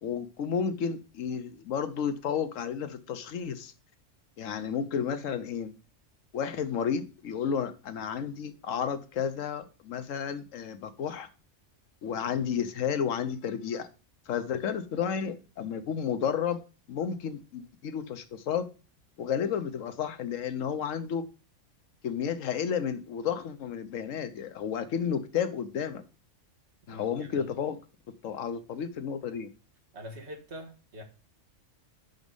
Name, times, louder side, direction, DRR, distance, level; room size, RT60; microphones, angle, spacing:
voice 1, 0.0-3.7 4.4-5.7 6.3-11.3 12.0-13.9 14.3-16.6 16.9-18.6 19.2-21.2 22.0-26.0 26.9-27.8 28.2-29.5, left 7 dB, 90° left, 1.2 m, -32 dB
voice 2, 26.9-27.5 29.9-31.0, equal, 60° right, 1.8 m, -44 dB
6.1 x 5.4 x 5.3 m
omnidirectional pair, 1.3 m